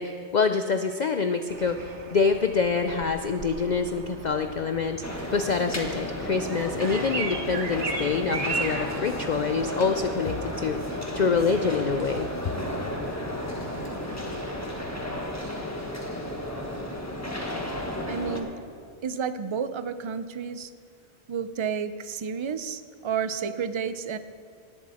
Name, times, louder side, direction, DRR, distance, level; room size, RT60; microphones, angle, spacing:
voice 1, 0.0-12.3, left 5 dB, 50° left, 7 dB, 0.6 m, -26 dB
sound 1, 1.5-15.3, right 3 dB, 80° right, 1.5 m, -38 dB
sound 2, 5.0-18.4, left 1 dB, 15° left, 1.4 m, -33 dB
voice 2, 18.1-18.5 19.0-20.7 21.3-24.2, right 6 dB, 40° right, 11 dB, 0.4 m, -31 dB
18.0 x 12.0 x 4.3 m, 2.2 s
omnidirectional pair, 1.2 m